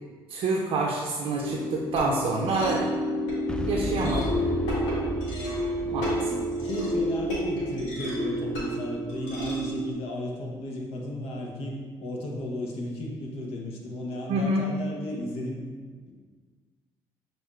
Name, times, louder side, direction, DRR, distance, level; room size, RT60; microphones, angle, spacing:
voice 1, 0.3-2.8 3.6-4.2 5.9-6.3 14.3-14.6, right 3 dB, 60° right, -2 dB, 0.5 m, -27 dB
sound 1, 1.4-9.9, equal, 90° left, 1.2 m, -30 dB
Boom, 3.5-9.4, left 1 dB, 10° left, 0.4 m, -36 dB
voice 2, 5.8-15.6 16.1-16.2, left 1 dB, 75° left, -1 dB, 0.9 m, -35 dB
7.1 x 2.6 x 2.4 m, 1.5 s
supercardioid pair, 65°, 10 cm